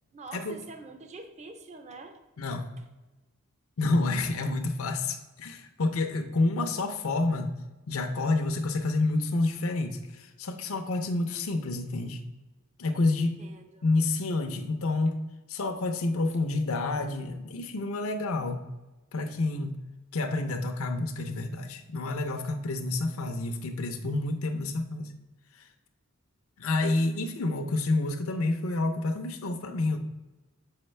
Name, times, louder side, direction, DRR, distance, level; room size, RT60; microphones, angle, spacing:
voice 1, 0.1-2.2 2.8-2.9 13.4-13.8, right 3 dB, 30° right, 6 dB, 0.5 m, -45 dB
voice 2, 2.4-2.7 3.8-7.5 7.9-12.2 12.8-13.4 13.8-15.2 15.5-18.6 19.1-19.8 20.1-25.1 25.5-25.7 26.6-30.0, left 2 dB, 70° left, 4 dB, 0.6 m, -29 dB
6.4 x 4.7 x 3.3 m, 1.1 s
head